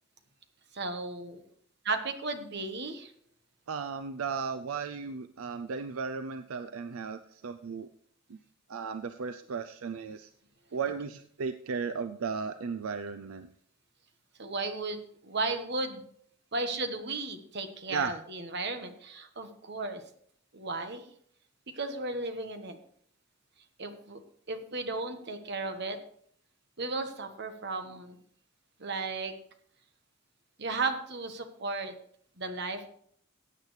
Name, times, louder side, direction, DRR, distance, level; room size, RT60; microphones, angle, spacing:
voice 1, 0.7-1.4 1.8-3.1 14.4-16.0 16.5-20.0 20.5-21.0 21.7-22.8 23.8-24.2 24.5-26.0 26.8-28.2 28.8-29.3 30.6-31.9 32.4-32.9, right 3 dB, 55° right, 7 dB, 1.3 m, -35 dB
voice 2, 3.7-7.9 8.3-8.4 8.7-10.3 10.7-13.5 17.9-18.2, right 5 dB, 80° right, 9 dB, 0.5 m, -35 dB
16.0 x 8.5 x 3.3 m, 0.63 s
head